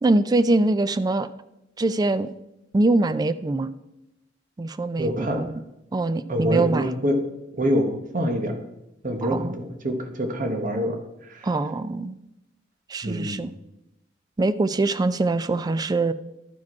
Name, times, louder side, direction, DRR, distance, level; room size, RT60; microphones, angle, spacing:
voice 1, 0.0-1.3 1.8-2.3 2.7-3.7 4.6-5.6 5.9-6.9 9.2-9.6 11.4-12.2 12.9-13.5 14.4-16.1, right 2 dB, 20° right, 14 dB, 0.3 m, -23 dB
voice 2, 5.0-5.4 6.3-7.2 7.6-8.5 9.0-10.9 11.3-11.5 13.0-13.4, equal, 45° right, 3 dB, 1.1 m, -25 dB
12.0 x 4.9 x 4.7 m, 0.91 s
head